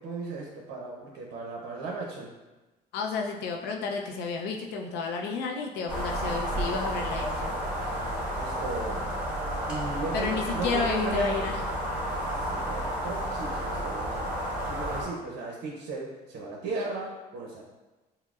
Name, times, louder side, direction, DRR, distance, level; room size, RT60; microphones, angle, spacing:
voice 1, 0.0-2.3 8.4-9.0 9.7-11.6 12.3-14.4 14.7-17.6, right 3 dB, 75° right, -2 dB, 0.7 m, -36 dB
voice 2, 2.9-7.5 10.1-11.6, left 4 dB, 85° left, 2 dB, 0.5 m, -31 dB
sound 1, 5.9-15.0, equal, 5° right, 1.4 m, -31 dB
5.5 x 2.1 x 2.4 m, 1.1 s
cardioid pair, 110°, 17 cm